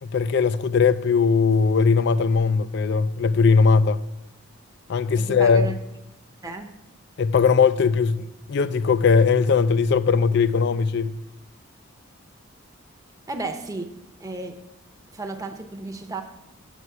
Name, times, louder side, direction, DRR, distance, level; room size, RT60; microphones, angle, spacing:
voice 1, 0.0-4.0 4.9-5.8 7.2-11.1, left 5 dB, 50° left, 0.3 m, -19 dB
voice 2, 5.2-5.7 6.4-6.7 13.3-13.9 14.2-14.6 15.1-16.2, right 3 dB, 15° right, 0.7 m, -33 dB
8.2 x 8.1 x 4.6 m
head